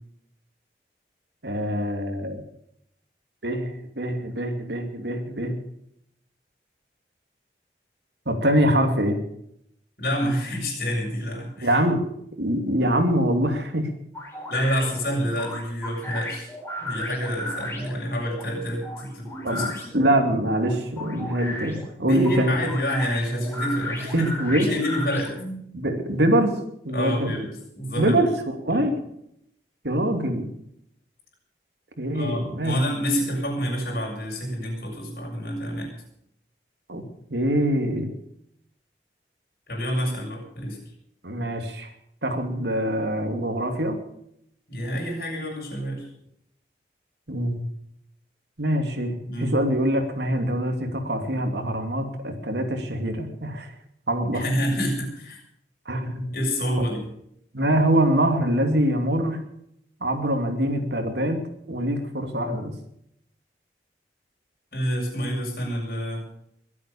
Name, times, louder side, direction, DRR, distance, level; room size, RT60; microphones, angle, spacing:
voice 1, 1.4-2.4 3.4-5.5 8.3-9.2 11.6-12.1 12.4-13.9 19.4-22.7 24.1-24.7 25.7-26.6 26.8-27.3 28.0-28.9 29.8-30.5 32.0-32.8 36.9-37.0 37.3-38.1 41.2-41.9 42.2-44.0 47.3-47.6 48.6-53.7 54.1-54.5 55.9-56.3 57.5-59.4 60.0-61.4 61.7-62.7, right 1 dB, 80° right, 5 dB, 2.8 m, -24 dB
voice 2, 10.0-11.8 14.5-16.5 16.8-19.7 22.0-24.3 24.6-25.3 26.9-28.3 28.7-28.9 32.1-35.9 39.7-40.8 44.7-46.1 49.3-49.5 54.3-55.4 56.3-57.1 64.7-66.2, equal, 55° left, -1 dB, 7.3 m, -28 dB
sound 1, 14.1-25.6, left 1 dB, 15° left, 4.6 m, -35 dB
22.0 x 8.5 x 7.1 m, 0.73 s
head